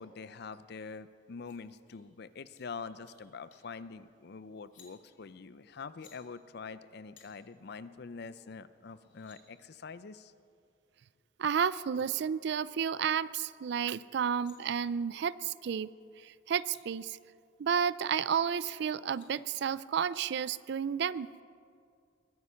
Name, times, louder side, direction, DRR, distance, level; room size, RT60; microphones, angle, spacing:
voice 1, 0.0-10.3, left 5 dB, 60° left, 14 dB, 0.5 m, -45 dB
sound 1, 1.4-1.6 1.9-2.0 2.4-2.6 2.9-3.2 3.5-3.7 4.6-4.9 5.8-6.2 7.1-7.3 8.6-8.7 8.9-9.4 11.4-11.5 11.8-12.0 14.1-14.6 16.2-16.3 16.5-16.8 18.8-19.3, left 6 dB, 85° left, 2.7 m, -61 dB
voice 2, 11.4-15.9 16.2-17.2 17.6-21.3, right 7 dB, 65° right, 18 dB, 0.4 m, -31 dB
21.5 x 9.5 x 5.7 m, 2.3 s
head